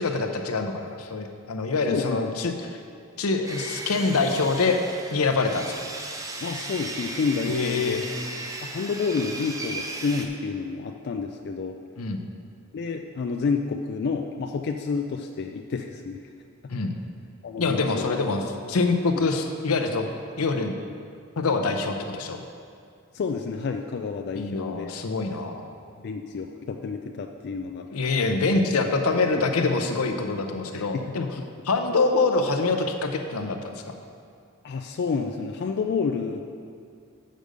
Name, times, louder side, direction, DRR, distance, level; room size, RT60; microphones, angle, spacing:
voice 1, 0.0-2.8 3.2-4.8 5.1-5.7 7.5-8.0 12.0-12.2 16.7-16.9 17.6-18.4 18.7-20.1 20.4-20.8 21.4-22.4 24.3-25.7 27.9-31.3 31.6-33.9, left 3 dB, 80° left, 4 dB, 0.7 m, -25 dB
voice 2, 1.9-2.5 6.4-8.0 8.6-11.8 12.7-16.2 17.4-18.4 19.1-19.3 23.1-24.9 26.0-27.9 29.3-29.4 30.7-30.9 34.6-36.4, left 5 dB, 50° left, 4 dB, 0.3 m, -29 dB
Sawing, 3.5-10.3, right 2 dB, 15° right, 0.5 m, -36 dB
6.5 x 5.2 x 6.5 m, 2.3 s
head